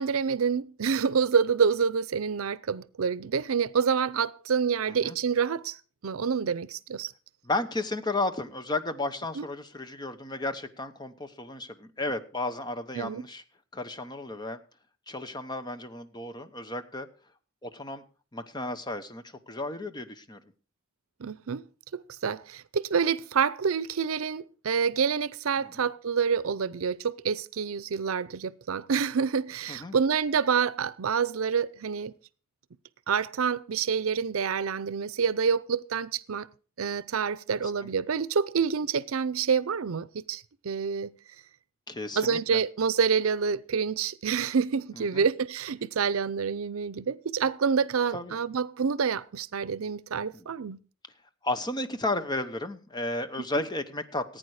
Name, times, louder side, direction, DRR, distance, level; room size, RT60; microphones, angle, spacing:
voice 1, 0.0-5.8 6.0-7.1 9.4-9.5 13.0-13.2 21.2-21.6 22.1-32.1 33.1-36.5 36.8-41.1 42.2-50.8, right 6 dB, 85° right, 0.6 m, -27 dB
voice 2, 4.9-5.2 7.4-13.4 13.7-14.6 15.1-17.1 17.6-18.0 18.3-20.4 25.6-25.8 29.7-30.0 37.5-37.9 41.9-42.6 45.0-45.2 48.1-48.4 50.3-50.5 51.4-54.4, left 2 dB, 20° left, 0.9 m, -33 dB
15.5 x 9.2 x 4.8 m
head